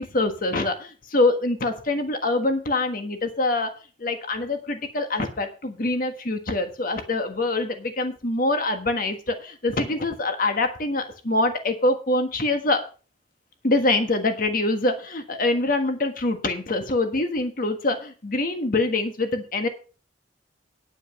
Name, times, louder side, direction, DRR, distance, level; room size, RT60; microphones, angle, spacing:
voice 1, 0.0-3.7 4.0-12.8 13.6-19.7, left 2 dB, 50° left, 6 dB, 1.5 m, -24 dB
9.9 x 9.0 x 5.4 m, 0.36 s
head